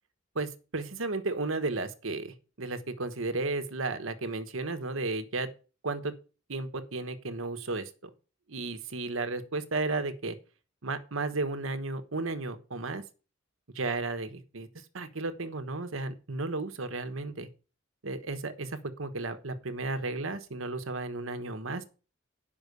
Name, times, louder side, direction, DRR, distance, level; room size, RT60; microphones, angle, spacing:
voice 1, 0.3-5.5 5.8-6.1 6.5-8.1 8.5-10.4 10.8-13.0 13.7-17.5 18.0-21.8, right 3 dB, 70° right, 10 dB, 1.2 m, -34 dB
9.7 x 5.7 x 6.6 m, 0.35 s
head